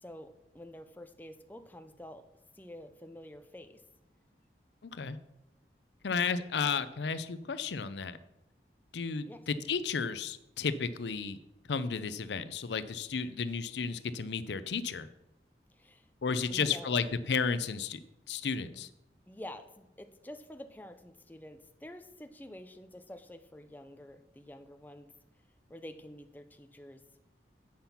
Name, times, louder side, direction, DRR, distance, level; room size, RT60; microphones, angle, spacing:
voice 1, 0.0-2.3 2.6-3.8 9.3-9.4 15.7-16.1 16.5-17.1 18.7-18.8 19.3-25.1 25.7-27.0, left 1 dB, 10° left, 7 dB, 0.5 m, -48 dB
voice 2, 4.8-5.2 6.0-8.2 8.9-11.4 11.7-15.1 16.2-18.0 18.3-18.9, left 5 dB, 80° left, 13 dB, 0.5 m, -33 dB
8.7 x 5.7 x 5.7 m, 0.87 s
head